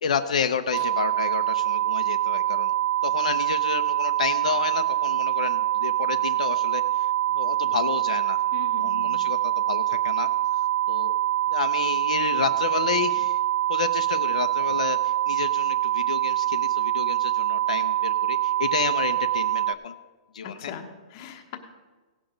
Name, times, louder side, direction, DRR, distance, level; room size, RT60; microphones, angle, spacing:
voice 1, 0.0-2.7 3.0-6.8 7.3-8.4 8.7-10.3 10.9-11.2 11.5-13.4 13.7-19.9 20.3-20.7, left 7 dB, 70° left, 8 dB, 0.6 m, -30 dB
sound 1, 0.7-19.7, right 13 dB, 25° right, 0.4 m, -25 dB
voice 2, 8.5-9.3 20.4-21.6, left 8 dB, 25° left, 4 dB, 1.0 m, -40 dB
17.0 x 6.0 x 5.1 m, 1.3 s
hypercardioid pair, 175°, 4 cm